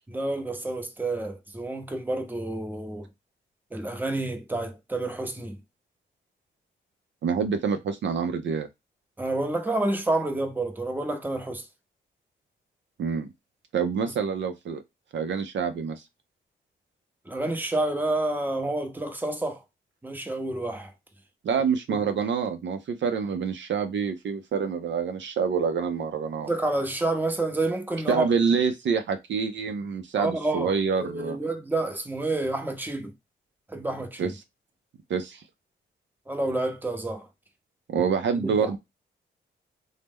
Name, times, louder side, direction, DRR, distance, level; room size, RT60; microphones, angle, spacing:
voice 1, 0.1-3.1 3.7-5.6 9.2-11.6 17.3-19.6 20.0-20.9 21.9-22.0 26.4-28.3 30.2-33.1 33.7-34.3 36.3-37.3 38.0-38.1 38.4-38.8, right 2 dB, 10° right, 0.7 m, -29 dB
voice 2, 7.2-8.7 13.0-13.3 13.7-14.8 15.1-16.0 21.4-26.5 28.1-31.4 34.2-34.3 35.1-35.4 37.9-38.8, right 6 dB, 65° right, 0.5 m, -27 dB
3.0 x 2.1 x 3.5 m
cardioid pair, 65°, 21 cm